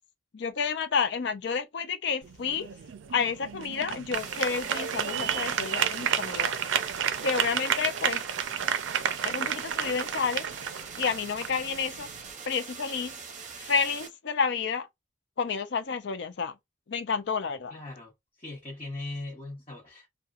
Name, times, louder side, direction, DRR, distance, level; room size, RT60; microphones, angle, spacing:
voice 1, 0.3-2.7 3.1-6.5 7.2-8.2 9.2-10.5 11.0-12.1 12.4-13.1 13.5-14.9 15.4-16.5 16.9-17.8, left 5 dB, 65° left, 0.5 m, -30 dB
sound 1, 2.2-12.3, right 8 dB, 80° right, 0.4 m, -31 dB
sound 2, 4.1-14.1, right 5 dB, 40° right, 0.7 m, -43 dB
voice 2, 17.7-18.1 18.4-20.1, left 2 dB, 35° left, 0.9 m, -39 dB
2.8 x 2.2 x 2.4 m
head